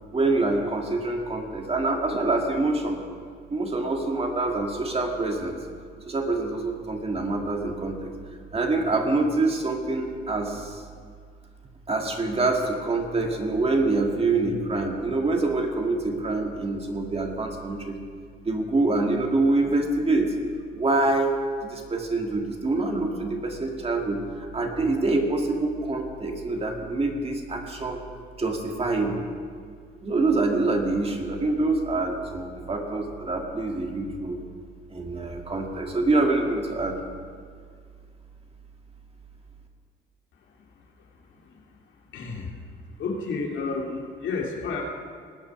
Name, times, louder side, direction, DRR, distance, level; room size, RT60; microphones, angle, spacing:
voice 1, 0.1-3.0 3.5-5.6 6.1-8.1 8.5-10.8 11.9-18.0 18.5-20.3 20.7-21.3 21.6-28.0 28.4-29.2 30.0-34.4 34.9-37.0, right 2 dB, 30° right, 2 dB, 2.0 m, -25 dB
voice 2, 42.1-42.5 43.0-44.8, left 4 dB, 75° left, 0 dB, 2.3 m, -30 dB
19.5 x 6.9 x 5.9 m, 2.1 s
cardioid pair, 90°, 20 cm